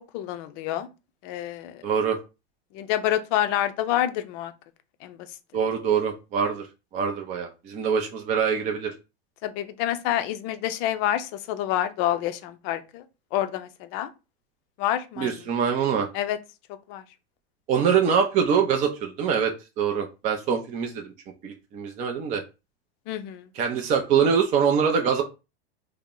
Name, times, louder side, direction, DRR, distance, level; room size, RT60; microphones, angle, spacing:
voice 1, 0.1-0.9 1.2-1.8 2.7-4.5 5.0-5.2 9.4-13.0 13.3-14.1 14.8-15.4 16.1-16.4 16.9-17.0 23.1-23.5, left 12 dB, 45° left, 0.5 m, -27 dB
voice 2, 1.8-2.2 5.5-6.6 6.9-8.9 15.2-16.1 17.7-21.1 21.4-22.4 23.5-25.2, right 7 dB, 25° right, 0.4 m, -24 dB
2.7 x 2.0 x 3.6 m
hypercardioid pair, 120°, 31 cm